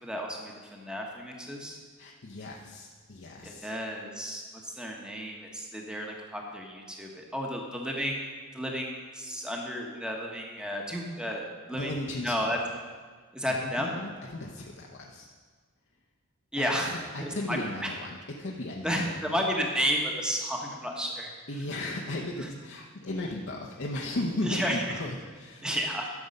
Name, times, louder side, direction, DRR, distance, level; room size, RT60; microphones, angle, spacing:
voice 1, 0.0-1.8 3.4-8.2 8.5-11.9 12.2-12.6 13.3-13.9 16.5-17.9 18.8-21.3 24.4-24.8 25.6-26.1, equal, 5° right, 0 dB, 1.1 m, -32 dB
voice 2, 2.0-3.7 11.7-12.5 13.5-15.3 16.6-19.4 21.5-25.7, left 1 dB, 55° left, -1 dB, 0.8 m, -36 dB
11.5 x 6.9 x 5.3 m, 1.5 s
head